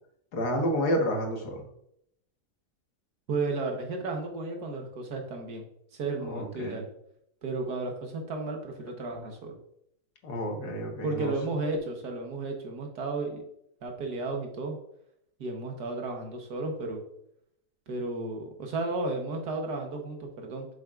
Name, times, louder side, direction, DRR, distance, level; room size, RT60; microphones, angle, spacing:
voice 1, 0.3-1.6 6.2-6.8 10.2-11.3, equal, 90° left, 2 dB, 1.9 m, -30 dB
voice 2, 3.3-5.6 5.9-6.9 7.4-9.6 11.0-13.4 13.8-14.8 15.4-17.0 17.9-20.7, right 3 dB, 85° right, 2 dB, 1.8 m, -33 dB
8.0 x 6.5 x 2.5 m, 0.74 s
omnidirectional pair, 1.7 m